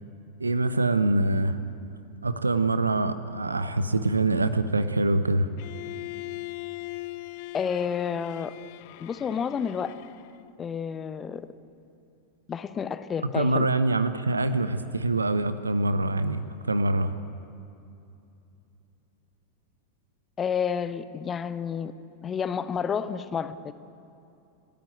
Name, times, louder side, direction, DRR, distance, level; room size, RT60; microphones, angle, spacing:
voice 1, 0.4-1.6 2.2-5.5 13.3-16.4 16.7-17.1, right 2 dB, 80° right, 13 dB, 0.9 m, -24 dB
Bowed string instrument, 5.6-10.5, left 21 dB, 45° left, 0.6 m, -40 dB
voice 2, 7.5-8.5 9.0-9.9 10.6-11.5 12.5-13.7 20.4-21.9 22.2-23.7, left 7 dB, 20° left, 13 dB, 0.8 m, -30 dB
29.0 x 10.5 x 9.0 m, 2.7 s
figure-of-eight pair, 90°, 0 cm